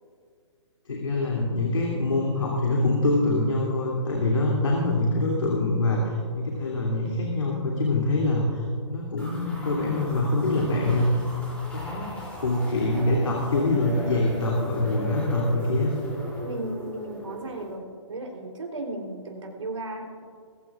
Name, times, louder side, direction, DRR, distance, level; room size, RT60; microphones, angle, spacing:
voice 1, 0.9-8.6 8.9-11.2 11.7-12.1 12.4-15.9, left 2 dB, 85° left, -3 dB, 3.0 m, -24 dB
sound 1, 9.2-17.7, equal, 5° left, 3.2 m, -38 dB
voice 2, 16.4-17.8 18.1-20.2, right 2 dB, 90° right, 1 dB, 3.6 m, -35 dB
21.0 x 15.0 x 2.5 m, 2.1 s
hypercardioid pair, 155°, 16 cm